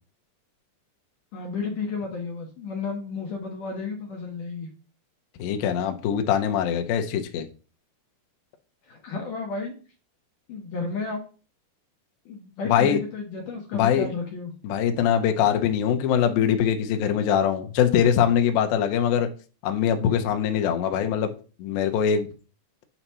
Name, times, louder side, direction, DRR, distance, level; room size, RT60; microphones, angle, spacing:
voice 1, 1.3-4.7 8.9-9.7 10.5-11.2 12.3-14.5, left 4 dB, 70° left, 2.0 m, -32 dB
voice 2, 5.4-7.5 12.7-13.0 13.7-14.1 14.6-19.3 19.6-21.3 21.6-22.3, left 8 dB, 90° left, 2.0 m, -22 dB
8.8 x 3.0 x 5.5 m
omnidirectional pair, 5.1 m